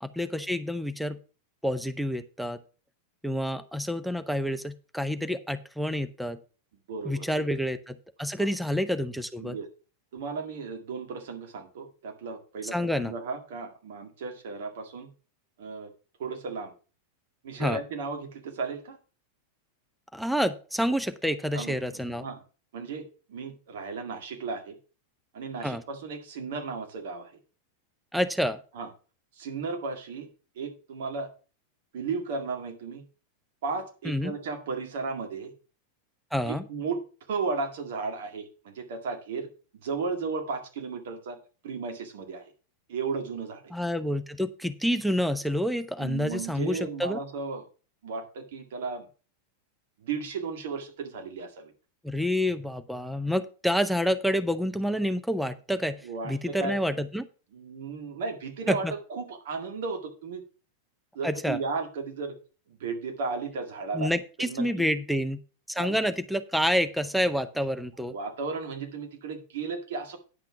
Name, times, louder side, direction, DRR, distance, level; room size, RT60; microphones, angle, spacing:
voice 1, 0.0-1.2 1.6-2.6 3.2-6.4 7.0-9.6 12.7-13.1 17.6-17.8 20.1-22.3 25.6-25.8 28.1-28.6 34.0-34.3 36.3-36.6 43.7-47.2 52.0-56.0 56.2-57.3 58.7-58.9 61.2-61.6 63.9-65.4 65.7-68.1, equal, ahead, 11 dB, 0.7 m, -28 dB
voice 2, 6.9-7.3 8.4-8.5 9.4-9.7 10.1-15.1 15.6-15.9 16.2-16.7 17.4-19.0 21.5-22.4 22.7-24.8 25.3-27.3 28.7-28.9 29.4-30.3 30.6-31.3 31.9-33.0 33.6-35.5 36.4-37.0 37.3-39.5 39.8-41.4 41.6-42.5 42.9-43.7 46.0-47.7 48.0-49.1 50.0-51.7 56.0-56.8 57.5-58.8 59.1-60.4 61.1-62.3 62.7-64.1 64.4-64.9 65.8-66.0 68.0-70.2, right 4 dB, 55° right, 4 dB, 2.0 m, -34 dB
9.9 x 5.9 x 5.8 m, 0.37 s
figure-of-eight pair, 90°, 0 cm